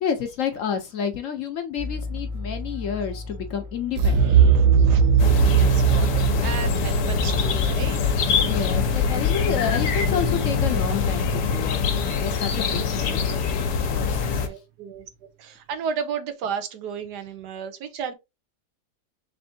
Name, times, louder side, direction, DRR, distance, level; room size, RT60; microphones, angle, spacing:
voice 1, 0.0-4.6 8.5-13.5 13.9-14.2, left 7 dB, 60° left, 0.9 m, -30 dB
sound 1, 1.8-7.0, left 3 dB, 35° right, 1.1 m, -33 dB
sound 2, 4.0-8.8, right 7 dB, 60° right, 0.9 m, -20 dB
voice 2, 4.2-5.1 5.4-8.0 14.2-15.0 15.4-18.1, right 7 dB, 85° right, 1.4 m, -33 dB
sound 3, 5.2-14.5, left 6 dB, 85° left, 1.4 m, -24 dB
4.2 x 3.5 x 2.7 m
omnidirectional pair, 1.7 m